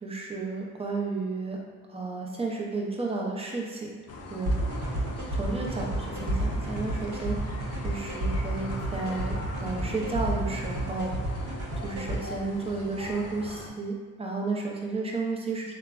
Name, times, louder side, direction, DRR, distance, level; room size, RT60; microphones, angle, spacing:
voice 1, 0.0-1.6 1.9-4.5 5.3-7.4 7.8-15.7, right 3 dB, 15° right, -2 dB, 0.5 m, -32 dB
sound 1, 4.1-13.7, left 2 dB, 45° left, 0.5 m, -40 dB
sound 2, 4.5-12.2, right 1 dB, 55° right, 0.8 m, -31 dB
3.2 x 2.1 x 2.4 m, 1.5 s
cardioid pair, 70°, 36 cm